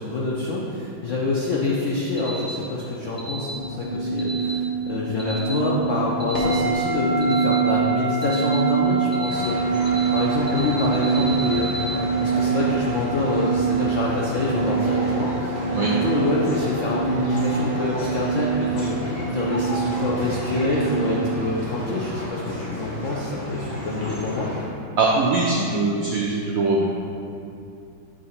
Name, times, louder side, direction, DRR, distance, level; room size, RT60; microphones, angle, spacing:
voice 1, 0.0-9.8 10.1-11.7 12.2-24.5, left 2 dB, 75° left, -4 dB, 0.7 m, -26 dB
sound 1, 2.2-2.5 3.2-3.5 4.2-4.5 5.2-5.5 6.2-6.5 7.2-7.5 8.2-8.5 9.1-9.4 9.9-10.2 10.5-11.9, right 2 dB, 35° left, 1.1 m, -36 dB
sound 2, 3.5-21.5, right 5 dB, 35° right, 0.7 m, -25 dB
sound 3, 9.2-24.6, left 1 dB, 60° left, 2.1 m, -32 dB
voice 2, 25.0-26.8, right 3 dB, 75° right, -3 dB, 0.7 m, -21 dB
7.7 x 4.0 x 4.3 m, 2.6 s
omnidirectional pair, 2.1 m